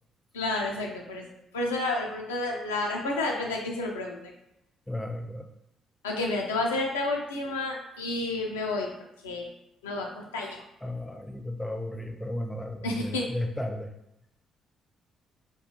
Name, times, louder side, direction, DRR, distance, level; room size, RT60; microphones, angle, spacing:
voice 1, 0.3-1.2 1.5-4.3 6.0-8.9 9.2-9.5 9.8-10.6 12.8-13.3, left 2 dB, 80° left, 0 dB, 0.3 m, -30 dB
voice 2, 4.9-5.5 10.8-13.9, left 1 dB, 10° left, 3 dB, 0.4 m, -34 dB
2.4 x 2.2 x 2.8 m, 0.85 s
figure-of-eight pair, 45°, 0 cm